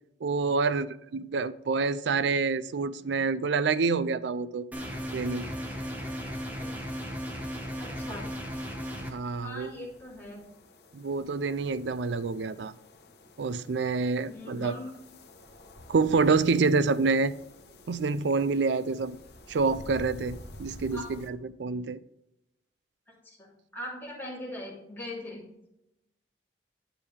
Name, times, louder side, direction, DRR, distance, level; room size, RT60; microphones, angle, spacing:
voice 1, 0.2-4.7 5.1-5.5 9.1-9.7 10.9-12.7 13.4-14.7 15.9-17.3 17.9-19.2 19.5-22.0, right 4 dB, 85° right, 0.4 m, -27 dB
sound 1, 4.7-9.1, equal, 10° right, 1.3 m, -36 dB
sound 2, 7.4-21.3, left 1 dB, 65° left, 0.9 m, -51 dB
voice 2, 7.8-8.3 9.4-10.4 14.3-14.9 20.9-21.1 23.2-25.4, left 1 dB, 10° left, 2.9 m, -40 dB
8.9 x 7.1 x 3.3 m
head